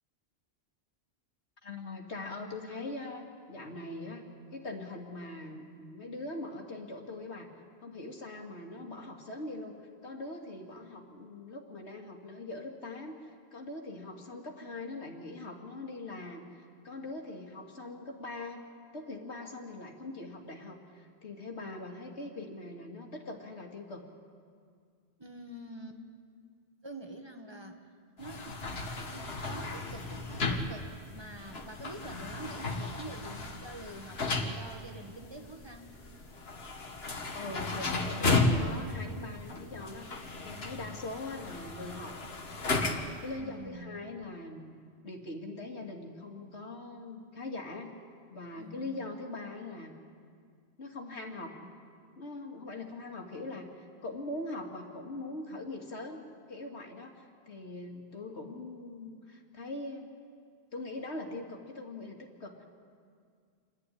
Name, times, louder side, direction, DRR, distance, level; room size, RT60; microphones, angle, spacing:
voice 1, 1.6-7.5 7.8-9.8 10.0-18.6 18.9-24.1 37.3-40.1 40.4-42.2 42.6-44.7 45.0-47.9 48.3-49.9 50.8-51.6 52.2-56.2 56.5-60.1 60.7-62.7, left 2 dB, 85° left, 2 dB, 2.5 m, -42 dB
voice 2, 25.2-26.0 26.8-27.8 28.2-28.6 29.1-35.9 43.4-44.0 48.6-49.1 51.1-51.7, right 1 dB, 25° right, 4 dB, 1.7 m, -46 dB
sound 1, 28.2-43.3, left 3 dB, 70° left, 1.8 m, -34 dB
28.0 x 11.5 x 9.9 m, 2.1 s
omnidirectional pair, 1.1 m